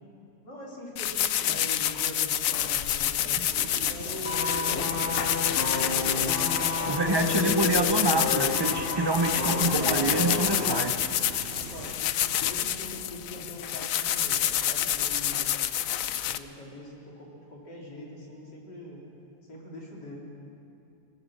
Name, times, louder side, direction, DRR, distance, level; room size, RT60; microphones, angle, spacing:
voice 1, 0.4-5.3 6.3-7.5 8.8-9.3 11.5-15.6 16.2-19.0 19.5-20.2, left 1 dB, 85° left, -3 dB, 4.2 m, -43 dB
sound 1, 1.0-16.4, left 11 dB, 65° left, 1.0 m, -28 dB
sound 2, 3.5-12.0, right 6 dB, 50° right, 1.0 m, -42 dB
sound 3, 4.3-10.9 11.2-11.4, left 4 dB, 40° left, 1.1 m, -31 dB
voice 2, 6.9-11.0, right 3 dB, 35° right, 7 dB, 0.4 m, -27 dB
25.5 x 17.5 x 6.5 m, 2.6 s
omnidirectional pair, 1.8 m